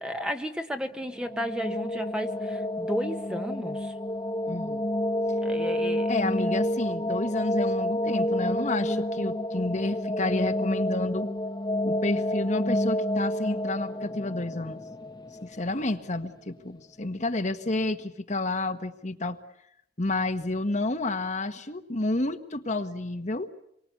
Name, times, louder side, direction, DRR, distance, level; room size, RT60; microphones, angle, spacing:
voice 1, 0.0-3.9 5.4-6.1, equal, 5° right, 6 dB, 1.4 m, -33 dB
sound 1, 1.0-16.0, left 1 dB, 25° left, 1.2 m, -29 dB
voice 2, 4.5-4.8 6.1-11.3 11.8-14.8 15.4-19.4 20.0-23.5, left 2 dB, 40° left, 7 dB, 1.4 m, -30 dB
28.0 x 23.5 x 8.4 m, 0.77 s
head